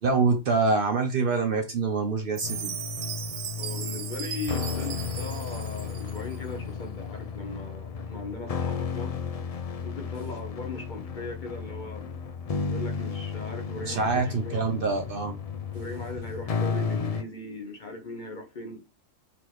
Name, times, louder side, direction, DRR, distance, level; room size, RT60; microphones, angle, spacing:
voice 1, 0.0-2.7 13.8-15.4, right 4 dB, 55° right, 0.8 m, -25 dB
sound 1, 2.4-17.2, left 5 dB, 70° left, 0.3 m, -33 dB
Chime, 2.4-6.4, right 9 dB, 85° right, 1.0 m, -37 dB
voice 2, 3.5-9.2 9.8-12.2 12.7-14.6 15.7-18.8, left 3 dB, 45° left, 0.7 m, -38 dB
4.1 x 2.9 x 3.2 m
omnidirectional pair, 1.3 m